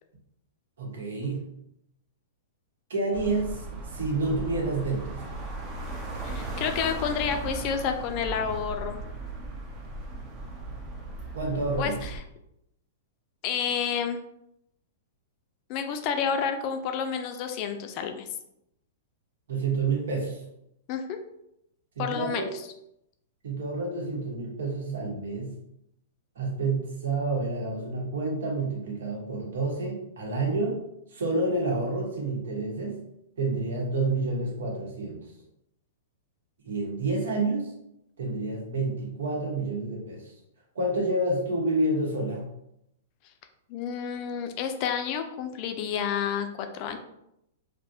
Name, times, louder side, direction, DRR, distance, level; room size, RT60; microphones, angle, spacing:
voice 1, 0.8-1.4 2.9-3.6 3.9-5.2 11.3-12.0 19.5-20.4 22.0-22.5 23.4-25.5 26.4-30.8 31.1-33.0 33.4-35.3 36.6-37.7 38.2-40.3 40.7-42.4, right 2 dB, 80° right, -1 dB, 0.8 m, -29 dB
sound 1, 3.1-12.2, right 2 dB, 20° right, 0.5 m, -37 dB
voice 2, 6.2-9.0 11.8-12.2 13.4-14.2 15.7-18.3 20.9-21.2 22.0-22.5 43.7-47.0, left 7 dB, 40° left, 6 dB, 0.3 m, -30 dB
2.3 x 2.0 x 2.6 m, 0.79 s
hypercardioid pair, 140°, 0 cm